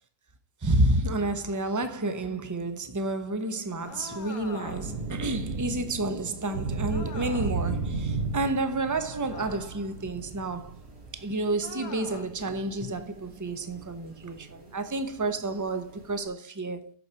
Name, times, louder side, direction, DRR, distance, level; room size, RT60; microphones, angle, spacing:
voice 1, 0.6-10.8 11.1-16.9, right 2 dB, 15° right, 0.7 m, -30 dB
sound 1, 3.8-5.1 6.9-7.7 9.3-9.9 11.6-12.4, left 4 dB, 65° left, 1.5 m, -43 dB
Thunder / Rain, 3.8-16.2, right 4 dB, 60° right, 2.7 m, -36 dB
8.4 x 6.6 x 4.6 m
omnidirectional pair, 1.7 m